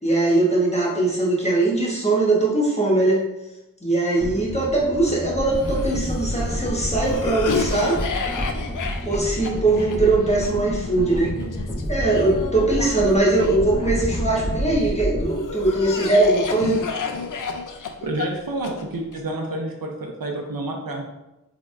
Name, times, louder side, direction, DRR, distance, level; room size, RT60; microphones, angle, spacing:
voice 1, 0.0-3.2 3.8-8.0 9.0-11.3 11.9-16.8, right 2 dB, 20° left, -4 dB, 1.1 m, -21 dB
sound 1, 4.2-16.5 16.8-17.0, equal, 10° right, 1.4 m, -29 dB
Cough, 5.5-14.7 15.3-19.2, left 5 dB, 65° left, 0.4 m, -32 dB
voice 2, 18.0-21.0, right 2 dB, 90° right, 1 dB, 0.7 m, -29 dB
3.8 x 3.4 x 2.4 m, 0.94 s
wide cardioid pair, 65°, 34 cm